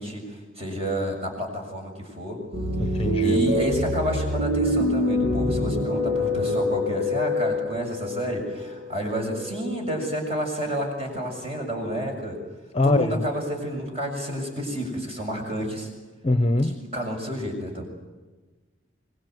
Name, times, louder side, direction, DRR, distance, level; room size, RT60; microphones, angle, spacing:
voice 1, 0.0-2.4 2.9-12.4 12.8-15.9 16.6-17.8, equal, 30° right, 2 dB, 7.0 m, -30 dB
sound 1, 2.5-10.0, left 1 dB, 90° right, 5.7 m, -26 dB
voice 2, 2.8-3.4 12.7-13.2 16.2-16.8, left 2 dB, 30° left, 11 dB, 1.0 m, -22 dB
25.0 x 21.5 x 9.4 m, 1.3 s
head